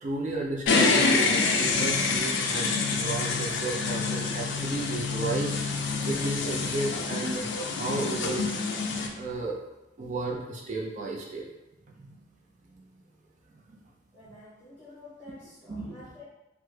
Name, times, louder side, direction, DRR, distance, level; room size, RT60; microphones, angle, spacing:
voice 1, 0.0-5.6 6.0-7.5 7.8-8.5 9.2-9.6 10.0-11.4 12.0-12.2 12.7-12.9 13.7-13.8 14.3-14.4 15.7-15.9, right 2 dB, 40° right, -2 dB, 0.4 m, -33 dB
sound 1, 0.7-9.1, left 4 dB, 70° left, 0.4 m, -27 dB
voice 2, 14.1-16.2, left 2 dB, 10° left, -11 dB, 0.7 m, -49 dB
3.3 x 2.0 x 3.1 m, 1.0 s
head